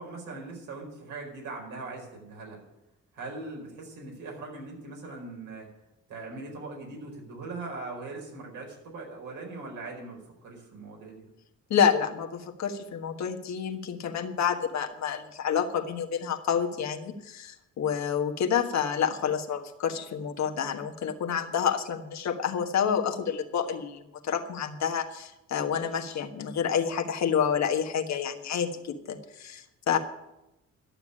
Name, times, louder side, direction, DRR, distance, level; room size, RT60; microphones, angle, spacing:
voice 1, 0.0-2.6 3.1-5.7 6.1-11.2, right 3 dB, 80° right, 0 dB, 4.7 m, -40 dB
voice 2, 11.7-30.0, left 7 dB, 65° left, 5 dB, 1.5 m, -28 dB
12.0 x 7.0 x 9.9 m, 0.94 s
cardioid pair, 90°, 30 cm